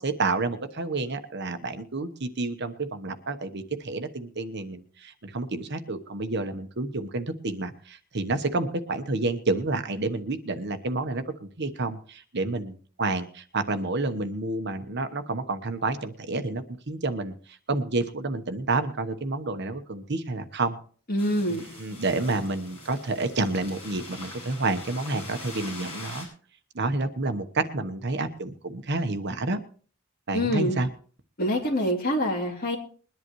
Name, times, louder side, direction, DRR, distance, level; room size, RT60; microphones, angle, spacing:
voice 1, 0.0-17.3 17.7-20.8 21.5-26.3 26.7-29.6 30.3-30.9, right 3 dB, 55° right, 9 dB, 1.1 m, -29 dB
voice 2, 21.1-21.6 30.3-30.8 31.4-32.8, equal, 45° left, 1 dB, 3.0 m, -25 dB
sound 1, 21.2-26.3, left 2 dB, 30° left, 6.6 m, -43 dB
22.0 x 11.0 x 3.1 m, 0.43 s
head